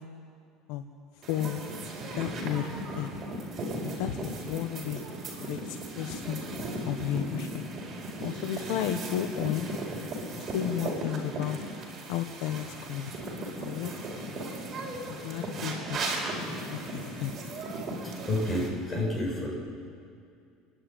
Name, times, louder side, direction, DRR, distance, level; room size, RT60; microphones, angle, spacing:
sound 1, 1.2-18.7, right 1 dB, 30° right, 5.2 m, -36 dB
voice 1, 1.3-1.6 2.2-3.1 3.8-5.0 5.4-6.4 6.9-7.6 8.2-9.7 10.4-11.6 12.1-13.1 13.6-13.9 15.2-16.0 16.6-17.3, left 11 dB, 75° left, 7 dB, 1.2 m, -33 dB
voice 2, 18.3-19.5, left 1 dB, 20° left, -3 dB, 7.3 m, -29 dB
29.0 x 11.0 x 9.3 m, 2.4 s
supercardioid pair, 135°, 0 cm